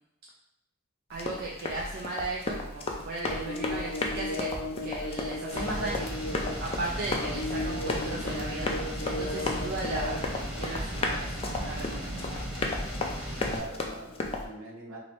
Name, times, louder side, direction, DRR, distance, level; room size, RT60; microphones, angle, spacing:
Run, 1.1-14.4, left 2 dB, 25° left, 0.3 m, -35 dB
voice 1, 1.1-4.5 4.8-6.1 6.6-8.7 9.1-12.5, right 2 dB, 50° right, -2 dB, 0.4 m, -36 dB
sound 1, 3.2-10.2, left 2 dB, 75° left, 0.5 m, -36 dB
sound 2, 5.5-13.6, equal, ahead, 1.1 m, -36 dB
voice 2, 13.2-15.0, right 2 dB, 65° right, -1 dB, 0.8 m, -43 dB
3.1 x 2.7 x 2.9 m, 0.80 s
head